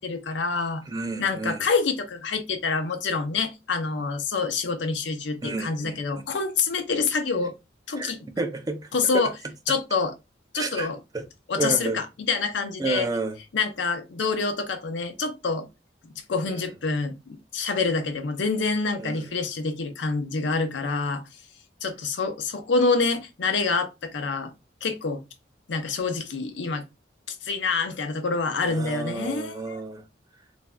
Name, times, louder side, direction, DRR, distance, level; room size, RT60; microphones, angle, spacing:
voice 1, 0.0-0.8 1.2-7.5 7.9-8.2 8.9-9.3 9.7-10.1 10.5-11.0 11.5-13.1 13.5-15.7 16.3-21.2 21.8-24.5 24.8-25.2 25.7-26.8 27.4-29.8, left 4 dB, 85° left, 0.6 m, -26 dB
voice 2, 0.9-1.6 5.4-6.0 8.0-8.9 9.1-9.2 10.6-11.3 11.6-12.0 12.8-13.4 19.0-19.3 28.6-30.0, right 3 dB, 20° right, 0.4 m, -30 dB
2.5 x 2.2 x 3.2 m
head